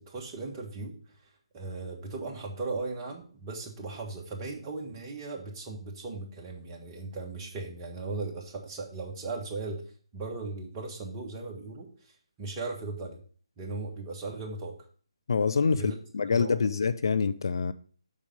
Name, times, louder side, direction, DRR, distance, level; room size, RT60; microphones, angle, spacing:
voice 1, 0.1-9.8 10.1-13.2 13.6-14.7 15.7-15.9 16.3-16.5, right 3 dB, 20° right, 1.4 m, -37 dB
voice 2, 15.3-17.7, left 5 dB, 50° left, 0.4 m, -26 dB
7.3 x 5.1 x 5.1 m
figure-of-eight pair, 145°, 3 cm